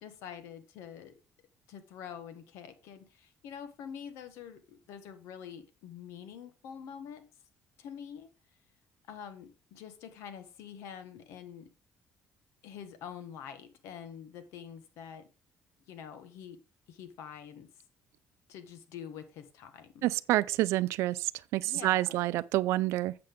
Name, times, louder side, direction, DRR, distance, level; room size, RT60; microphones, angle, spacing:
voice 1, 0.0-1.2 1.7-7.2 7.8-8.3 9.1-11.7 12.6-15.3 15.9-16.6 16.9-17.7 18.5-20.0 21.6-22.2, left 8 dB, 85° left, 1.3 m, -46 dB
voice 2, 20.0-23.1, right 16 dB, 85° right, 0.4 m, -28 dB
7.7 x 7.6 x 3.5 m
cardioid pair, 110°, 5 cm